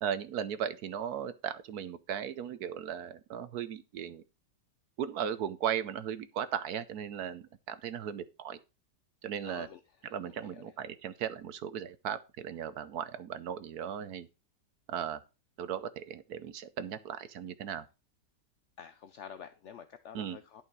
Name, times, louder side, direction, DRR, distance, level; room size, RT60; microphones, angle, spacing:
voice 1, 0.0-4.2 5.0-8.6 9.2-9.7 10.1-14.3 14.9-15.2 15.6-17.8 20.1-20.4, right 9 dB, 70° right, 1.1 m, -37 dB
voice 2, 9.4-10.7 18.8-20.6, left 8 dB, 60° left, 0.8 m, -49 dB
11.0 x 5.7 x 4.6 m
omnidirectional pair, 1.9 m